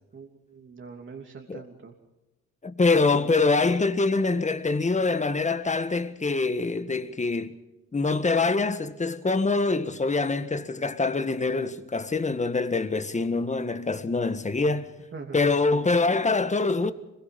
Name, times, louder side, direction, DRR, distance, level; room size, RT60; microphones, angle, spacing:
voice 1, 0.1-1.9 15.1-15.5 15.8-15.9, right 5 dB, 40° right, 3.0 m, -43 dB
voice 2, 2.6-7.6 7.9-14.9 15.3-16.9, left 3 dB, 25° left, 1.6 m, -24 dB
25.5 x 22.5 x 5.4 m
cardioid pair, 90°, 30 cm